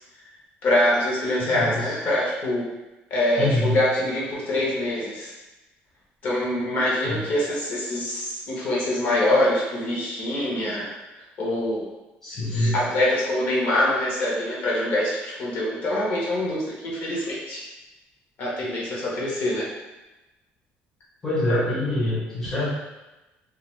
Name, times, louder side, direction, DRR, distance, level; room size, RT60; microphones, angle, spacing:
voice 1, 0.6-2.7 3.1-5.3 6.2-10.9 11.4-11.8 12.5-17.6 18.4-19.7 21.5-21.6, left 1 dB, 45° left, -5 dB, 0.9 m, -24 dB
voice 2, 1.4-2.0 3.4-3.8 7.0-7.3 12.2-12.8 21.2-22.7, left 1 dB, 10° left, -8 dB, 0.7 m, -25 dB
2.3 x 2.3 x 3.0 m, 1.0 s
cardioid pair, 160°, 4 cm